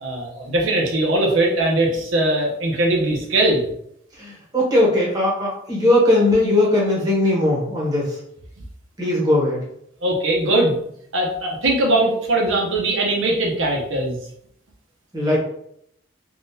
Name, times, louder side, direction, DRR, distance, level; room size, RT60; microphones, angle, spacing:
voice 1, 0.0-3.7 10.0-10.8 11.1-14.2, right 1 dB, 70° right, -2 dB, 0.8 m, -20 dB
voice 2, 4.2-8.2 9.0-9.6 15.1-15.4, left 1 dB, 20° right, -5 dB, 0.9 m, -19 dB
3.6 x 2.4 x 2.7 m, 0.72 s
head